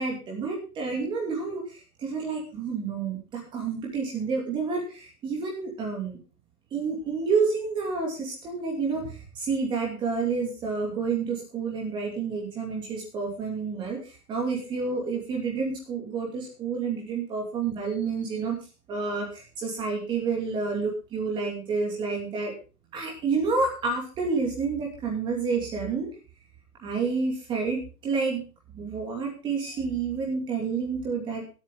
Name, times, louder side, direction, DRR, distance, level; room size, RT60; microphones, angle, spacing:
voice 1, 0.0-1.6 2.0-6.2 6.7-14.0 14.3-18.6 18.9-22.5 22.9-26.1 26.8-28.4 28.7-31.4, right 4 dB, 10° right, -1 dB, 2.9 m, -29 dB
19.0 x 8.8 x 3.8 m, 0.33 s
hypercardioid pair, 160°, 46 cm